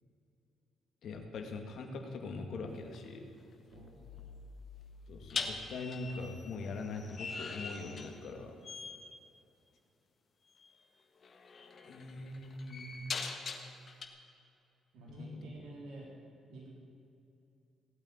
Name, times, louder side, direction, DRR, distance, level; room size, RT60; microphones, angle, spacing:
voice 1, 1.0-3.3 5.1-8.6 11.9-13.1 15.1-15.5, left 3 dB, 70° left, 4 dB, 2.1 m, -42 dB
sound 1, 2.7-3.0 5.3-8.4 8.6-9.1 10.6-10.7 11.2-14.1, left 5 dB, 50° left, 1.7 m, -42 dB
sound 2, 3.7-6.6, left 4 dB, 85° left, 0.7 m, -54 dB
voice 2, 3.7-4.3 14.9-16.1 16.5-16.7, right 2 dB, 75° right, -4 dB, 4.1 m, -50 dB
17.5 x 9.0 x 8.9 m, 2.7 s
supercardioid pair, 55°, 0 cm